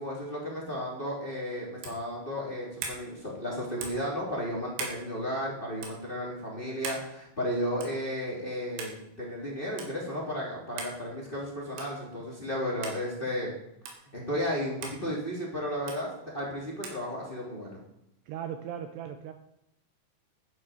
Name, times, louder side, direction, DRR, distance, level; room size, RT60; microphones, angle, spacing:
voice 1, 0.0-13.5 14.1-17.8, equal, 15° left, -3 dB, 2.4 m, -34 dB
sound 1, 1.8-2.0 2.8-3.0 3.8-4.1 4.8-5.0 5.8-6.0 6.8-7.1 7.8-8.0 8.8-9.0 9.8-9.9 10.8-11.0 11.8-12.0 12.8-13.0 13.9-14.0 14.8-15.0 15.9-16.0 16.8-17.0, right 4 dB, 70° right, 4.3 m, -38 dB
voice 2, 18.3-19.3, right 9 dB, 90° right, 7 dB, 2.4 m, -37 dB
12.5 x 10.0 x 5.0 m, 0.83 s
omnidirectional pair, 5.5 m